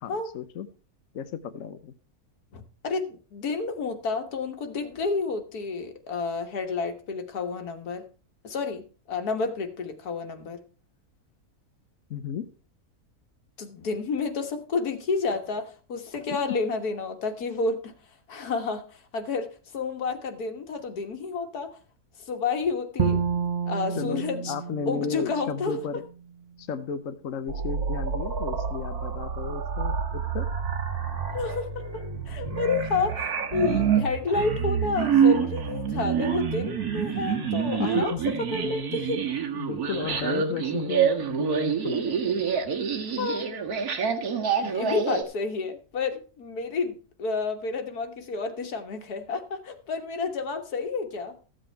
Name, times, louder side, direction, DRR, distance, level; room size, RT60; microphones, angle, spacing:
voice 1, 0.0-0.7 1.1-1.9 12.1-12.5 24.0-26.0 26.6-30.5 37.8-38.2 39.5-42.4, left 6 dB, 65° left, 9 dB, 1.1 m, -34 dB
voice 2, 2.5-8.1 8.4-10.6 13.6-21.7 22.2-23.2 23.7-24.6 24.9-25.8 31.3-39.2 43.2-43.5 44.6-51.4, left 4 dB, 90° left, 6 dB, 1.9 m, -30 dB
Bowed string instrument, 23.0-26.1, right 6 dB, 35° right, 0.8 m, -29 dB
sound 1, 27.5-45.2, right 7 dB, 80° right, 1.9 m, -27 dB
14.0 x 7.7 x 4.4 m, 0.37 s
omnidirectional pair, 1.6 m